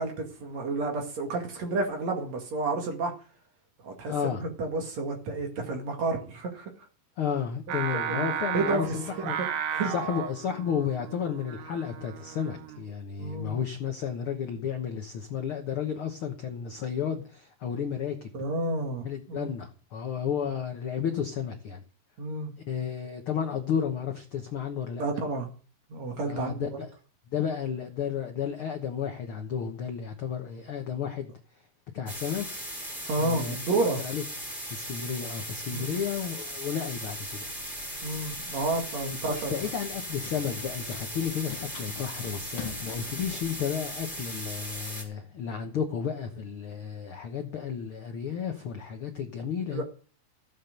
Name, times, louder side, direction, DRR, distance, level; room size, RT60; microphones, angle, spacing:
voice 1, 0.0-3.1 3.8-4.1 4.6-6.7 7.7-7.8 8.1-8.9 9.4-9.9 13.2-13.6 18.3-19.5 20.3-20.4 22.2-22.5 25.0-25.5 25.9-26.8 33.1-34.0 35.7-36.0 38.0-39.5 49.7-49.8, right 3 dB, 55° right, 3 dB, 3.1 m, -30 dB
voice 2, 4.0-4.4 7.2-9.4 9.9-18.3 19.0-21.8 22.7-25.0 26.3-26.9 27.3-31.4 31.9-32.5 33.2-33.6 34.0-34.2 34.7-37.4 39.3-49.8, left 8 dB, 70° left, 4 dB, 1.3 m, -32 dB
Singing, 7.7-12.9, right 8 dB, 70° right, 2.4 m, -34 dB
sound 1, 32.1-45.0, equal, 15° right, 4.2 m, -38 dB
Run, 37.1-44.8, left 8 dB, 55° left, 2.1 m, -47 dB
15.0 x 7.4 x 6.7 m, 0.40 s
omnidirectional pair, 4.1 m